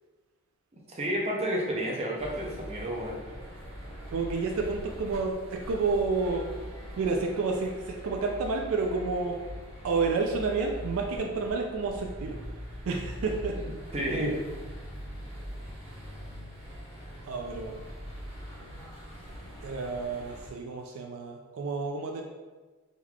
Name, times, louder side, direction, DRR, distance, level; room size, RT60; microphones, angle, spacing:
voice 1, 0.7-3.2 13.9-14.4, equal, 30° right, -3 dB, 0.6 m, -30 dB
Bond Street - Roadworks, 2.1-20.5, equal, 20° left, 1.3 m, -42 dB
voice 2, 4.1-6.4 7.0-9.4 9.8-12.4 12.8-13.6 17.2-17.7 19.6-22.2, right 4 dB, 70° right, 2 dB, 0.3 m, -30 dB
3.6 x 3.0 x 2.3 m, 1.3 s
head